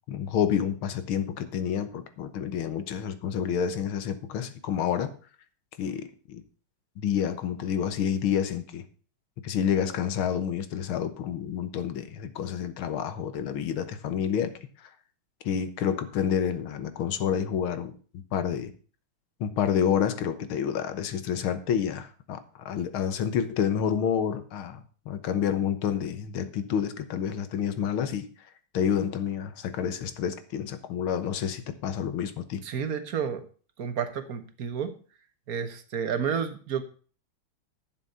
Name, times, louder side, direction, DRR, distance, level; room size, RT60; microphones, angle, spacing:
voice 1, 0.1-5.1 5.8-6.4 7.0-8.8 9.4-14.5 14.8-14.9 15.5-17.9 18.3-18.7 19.4-28.3 28.7-32.6, left 8 dB, 80° left, 11 dB, 1.9 m, -29 dB
voice 2, 32.6-33.4 33.8-34.9 35.5-36.8, right 7 dB, 50° right, 9 dB, 1.5 m, -30 dB
11.0 x 6.8 x 5.6 m, 0.40 s
omnidirectional pair, 2.3 m